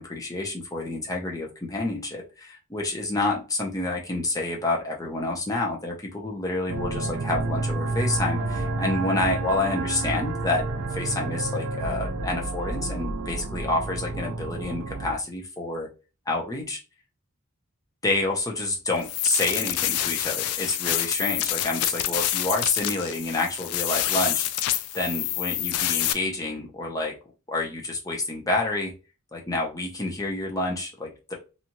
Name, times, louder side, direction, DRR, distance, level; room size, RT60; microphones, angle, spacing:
voice 1, 0.0-15.9 16.3-16.8 18.0-24.5 24.9-27.1 27.5-28.9 29.3-31.3, left 2 dB, 15° left, -1 dB, 0.6 m, -28 dB
sound 1, 6.7-15.1, right 3 dB, 60° right, 0.4 m, -30 dB
sound 2, 19.0-26.1, left 12 dB, 85° left, 0.3 m, -27 dB
2.7 x 2.3 x 2.9 m, 0.31 s
head